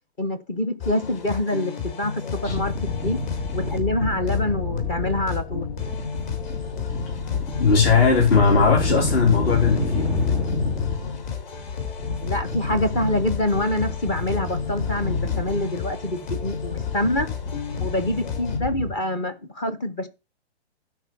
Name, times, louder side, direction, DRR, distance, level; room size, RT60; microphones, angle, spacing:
voice 1, 0.2-3.2 3.5-5.7 12.2-17.3 17.8-20.1, left 1 dB, 10° left, 0.4 m, -26 dB
sound 1, 0.8-18.6, left 6 dB, 45° left, 2.9 m, -33 dB
sound 2, 2.4-18.9, left 4 dB, 80° left, 3.5 m, -28 dB
voice 2, 7.6-10.1, left 5 dB, 60° left, 2.9 m, -18 dB
12.5 x 4.4 x 5.7 m
hypercardioid pair, 145°, 33 cm